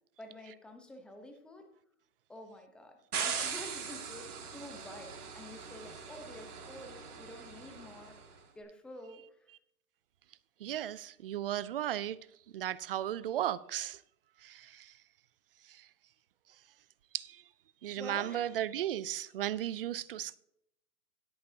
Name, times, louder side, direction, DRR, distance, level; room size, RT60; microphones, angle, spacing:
voice 1, 0.2-1.7 2.3-8.1 8.5-9.2 18.0-18.5, left 1 dB, ahead, 0.8 m, -49 dB
sound 1, 3.1-8.3, right 6 dB, 85° right, 2.3 m, -40 dB
voice 2, 10.6-12.2 12.5-14.0 14.4-14.9 15.7-15.8 17.1-17.4 17.8-20.4, right 12 dB, 40° right, 0.4 m, -35 dB
17.0 x 8.7 x 2.8 m
hypercardioid pair, 145°, 44 cm